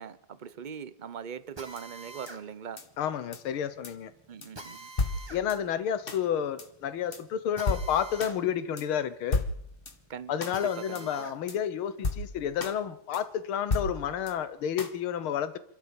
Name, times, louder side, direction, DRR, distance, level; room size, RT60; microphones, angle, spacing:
voice 1, 0.0-2.8 4.3-4.9 10.1-10.3 10.6-11.3, right 7 dB, 45° right, 15 dB, 0.6 m, -41 dB
Drill, 1.6-11.4 11.8-13.5, right 2 dB, 15° right, 1.8 m, -49 dB
sound 1, 1.8-1.9 2.3-2.4 2.8-2.9 3.3-3.4 3.8-3.9 4.4-4.5 5.0-5.6 6.1-6.2 6.6-6.7 7.1-7.2 7.7-8.4 8.8-8.9 9.3-10.0 10.4-10.6 10.9-11.0 11.5-11.6 12.0-12.8 13.1-13.2 13.7-14.3 14.8-14.9, left 3 dB, 30° left, 1.7 m, -33 dB
voice 2, 3.0-4.1 5.3-9.4 10.3-15.6, left 9 dB, 85° left, 13 dB, 2.0 m, -30 dB
28.0 x 13.0 x 7.1 m, 0.70 s
omnidirectional pair, 2.3 m